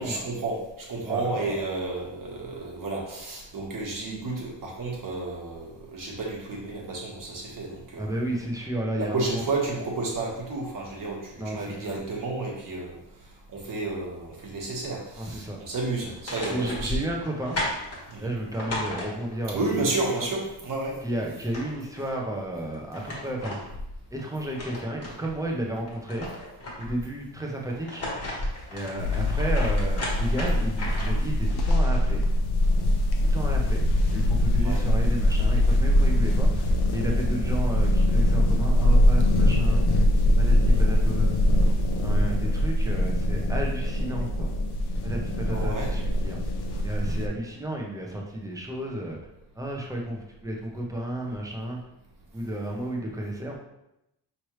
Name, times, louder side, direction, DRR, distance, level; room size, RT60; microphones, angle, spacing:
voice 1, 0.0-8.1 9.0-13.0 13.5-17.0 18.1-18.3 19.5-20.9 34.6-34.8 45.5-45.9, right 3 dB, 50° right, -2 dB, 1.3 m, -31 dB
voice 2, 1.1-1.6 8.0-9.4 11.4-12.0 15.2-15.6 16.5-17.6 18.2-19.7 20.2-20.3 21.0-23.6 24.1-26.3 26.8-28.1 28.7-32.2 33.2-36.6 36.9-39.8 40.4-41.4 42.0-44.5 45.0-46.4 46.8-49.2 49.6-51.8 52.3-53.6, right 1 dB, 10° right, -1 dB, 0.7 m, -32 dB
sound 1, 16.0-19.6 21.0-21.1 21.3-22.2 22.7-25.4 25.8-27.1 27.7-31.3, left 1 dB, 35° left, 1.4 m, -35 dB
sound 2, 29.0-47.3, left 1 dB, 60° left, 0.7 m, -22 dB
5.1 x 3.2 x 3.1 m, 0.86 s
wide cardioid pair, 145°, 43 cm